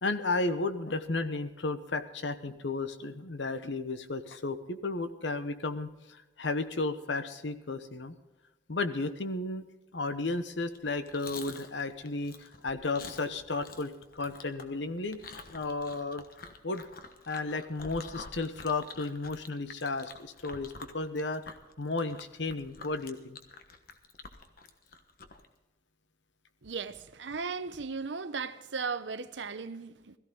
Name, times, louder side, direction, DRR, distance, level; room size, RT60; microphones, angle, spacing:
voice 1, 0.0-8.1 8.7-9.6 9.9-15.2 15.5-16.2 16.6-16.9 17.3-23.4, left 3 dB, 80° left, 1.1 m, -33 dB
Chewing mastication, 10.6-25.5, left 4 dB, 55° left, 1.3 m, -48 dB
voice 2, 26.6-30.2, right 5 dB, 80° right, 0.8 m, -36 dB
17.0 x 14.0 x 3.9 m
head